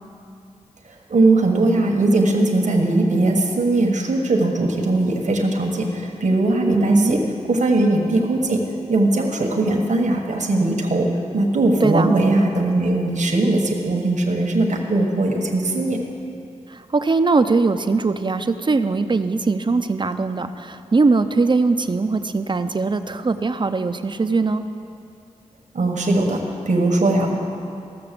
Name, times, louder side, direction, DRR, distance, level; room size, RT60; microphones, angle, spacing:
voice 1, 1.1-7.2 7.5-16.0 25.7-27.4, right 2 dB, 70° right, 1 dB, 1.4 m, -19 dB
voice 2, 6.7-7.2 11.8-12.1 16.7-24.6, right 3 dB, 40° right, 9 dB, 0.6 m, -20 dB
15.0 x 6.8 x 6.8 m, 2.5 s
wide cardioid pair, 70°, 13 cm